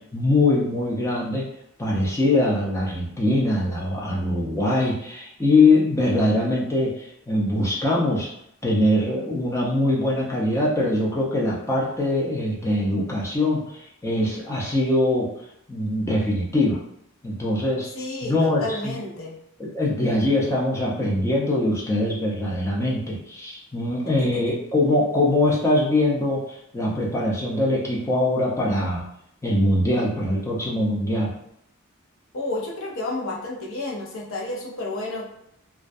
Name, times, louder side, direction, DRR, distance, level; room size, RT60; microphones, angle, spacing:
voice 1, 0.1-1.4 1.8-8.3 8.6-15.3 15.7-16.8 17.2-17.9 18.2-19.0 19.6-29.0 29.4-31.3, left 2 dB, 10° left, -4 dB, 0.4 m, -22 dB
voice 2, 17.9-19.3 24.2-24.6 32.3-35.3, left 2 dB, 60° left, -2 dB, 0.6 m, -31 dB
2.3 x 2.1 x 2.5 m, 0.74 s
head